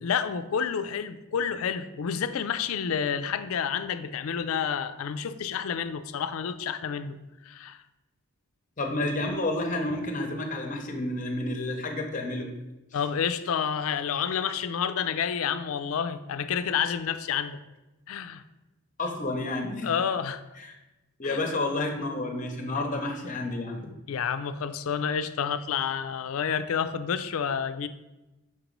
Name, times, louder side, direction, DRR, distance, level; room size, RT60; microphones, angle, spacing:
voice 1, 0.0-7.2 7.4-7.8 12.9-17.6 18.1-18.4 19.8-20.4 21.2-21.4 24.1-27.9, left 7 dB, 75° left, 11 dB, 0.4 m, -29 dB
voice 2, 8.8-12.5 19.0-19.9 20.6-20.7 21.2-23.9, left 2 dB, 35° left, 3 dB, 0.7 m, -30 dB
6.4 x 3.0 x 5.1 m, 1.0 s
head